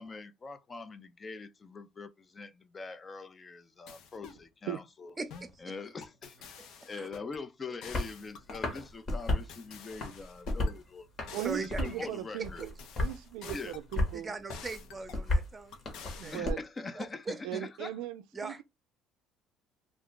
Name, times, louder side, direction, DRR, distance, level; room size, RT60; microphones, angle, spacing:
voice 1, 0.0-5.1 5.6-6.6 6.9-11.1 11.5-12.6 13.5-13.8 16.3-18.0, left 4 dB, 30° left, 0.4 m, -43 dB
sound 1, 3.9-4.4 5.3-5.6 6.0-7.4 7.8-8.9 9.5-10.7 11.3-12.1 12.6-14.0 14.5-15.2 15.7-16.4, left 6 dB, 70° left, 0.6 m, -49 dB
voice 2, 5.2-5.5 6.6-6.7 7.0-7.1 11.3-12.1 13.4-13.6 14.1-16.4 16.9-17.6 18.3-18.6, right 3 dB, 20° right, 0.7 m, -40 dB
sound 2, 7.9-8.1 8.5-9.5 9.9-10.8 11.2-12.1 12.4-13.2 13.5-14.2 14.5-16.5, left 1 dB, 45° left, 1.2 m, -33 dB
voice 3, 11.3-12.7 13.0-14.3 16.1-16.6 17.4-18.6, right 13 dB, 90° right, 0.3 m, -38 dB
2.4 x 2.3 x 3.6 m
cardioid pair, 105°, 0 cm